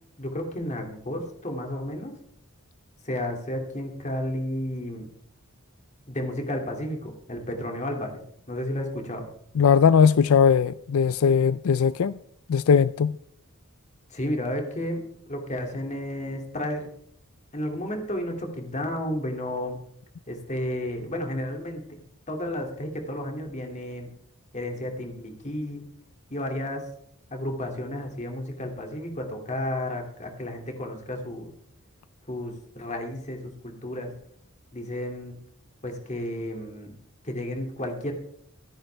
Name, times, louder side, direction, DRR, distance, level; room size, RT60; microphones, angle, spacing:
voice 1, 0.2-2.1 3.0-5.1 6.1-8.2 8.5-9.3 14.1-15.0 15.3-16.9 17.5-19.8 20.3-22.0 22.3-24.1 24.5-25.8 26.3-26.9 27.3-31.5 32.3-34.1 34.7-35.4 35.8-36.9 37.2-38.1, left 1 dB, 35° left, 2.5 m, -32 dB
voice 2, 9.6-12.2 12.5-13.2, left 6 dB, 75° left, 0.4 m, -19 dB
24.0 x 10.5 x 3.4 m
head